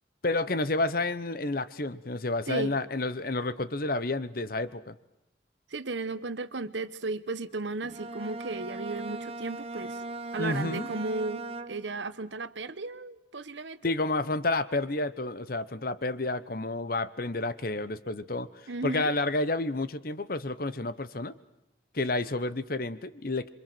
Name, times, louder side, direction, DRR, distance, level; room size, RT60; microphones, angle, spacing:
voice 1, 0.2-5.0 10.4-10.9 13.8-18.5 18.8-21.3 21.9-23.5, left 2 dB, 50° left, 15 dB, 1.0 m, -30 dB
voice 2, 5.7-10.0 10.3-13.9 18.7-19.1, right 3 dB, 75° right, 13 dB, 1.1 m, -35 dB
Bowed string instrument, 7.8-12.1, right 3 dB, 30° right, 0.9 m, -39 dB
27.0 x 24.0 x 7.8 m, 0.84 s
head